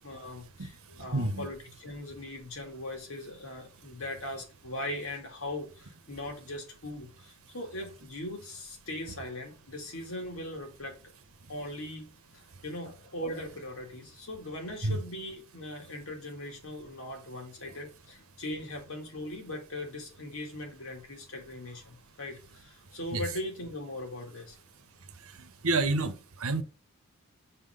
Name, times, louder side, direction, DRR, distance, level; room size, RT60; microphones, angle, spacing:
voice 1, 0.0-11.0 11.5-12.1 12.3-24.6, left 1 dB, 65° left, 2.2 m, -40 dB
voice 2, 0.6-1.5 11.4-11.5 12.5-12.6 14.8-15.0 23.1-23.2 25.0-26.6, right 2 dB, 70° right, 1.0 m, -31 dB
5.8 x 3.9 x 5.5 m
head